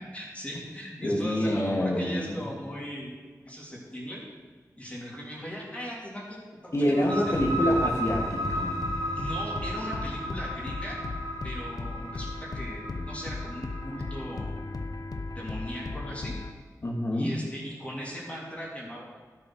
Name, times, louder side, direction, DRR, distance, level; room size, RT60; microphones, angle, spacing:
voice 1, 0.0-3.1 3.4-4.2 4.8-7.9 9.1-11.0 11.4-14.5 15.3-16.4 17.1-19.0, equal, 20° left, -5 dB, 3.3 m, -39 dB
voice 2, 1.0-2.4 6.7-8.8 16.8-17.4, equal, 45° left, -1 dB, 2.3 m, -26 dB
sound 1, 6.9-14.4, equal, 70° right, 1.5 m, -34 dB
sound 2, 7.3-16.5, left 3 dB, 75° left, 0.9 m, -36 dB
13.0 x 7.6 x 6.2 m, 1.5 s
wide cardioid pair, 85°, 7 cm